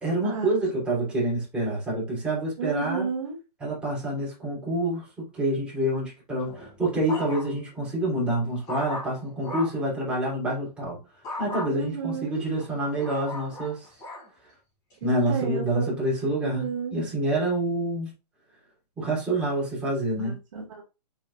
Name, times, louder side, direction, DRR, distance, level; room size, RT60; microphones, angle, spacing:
voice 1, 0.0-3.1 3.6-11.0 11.4-13.9 15.0-18.1 19.0-20.4, right 1 dB, 5° right, 3.1 m, -27 dB
voice 2, 2.6-3.4 11.7-12.5 15.0-15.9 16.4-17.0 20.1-20.8, right 6 dB, 50° right, 1.9 m, -32 dB
sound 1, 6.4-7.7 8.2-9.9 11.2-11.7 12.3-14.3 14.9-15.3, left 1 dB, 20° left, 3.0 m, -37 dB
7.2 x 5.5 x 2.4 m
hypercardioid pair, 155°, 21 cm